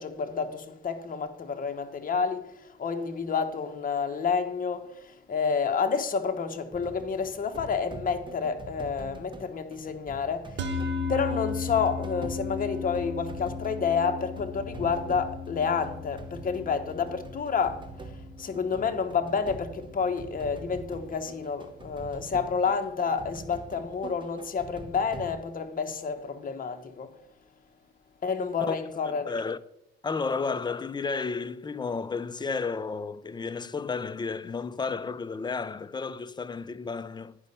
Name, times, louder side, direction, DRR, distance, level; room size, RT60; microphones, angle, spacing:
voice 1, 0.0-10.5 11.1-17.9 18.4-27.1 28.2-29.3, left 5 dB, 45° left, 1.1 m, -29 dB
sound 1, 6.7-25.4, right 3 dB, 25° right, 1.3 m, -45 dB
sound 2, 10.6-21.0, left 4 dB, 65° right, 1.1 m, -37 dB
voice 2, 29.0-29.6 30.0-37.4, left 4 dB, 20° left, 0.5 m, -32 dB
10.0 x 5.3 x 5.4 m
cardioid pair, 90°, 20 cm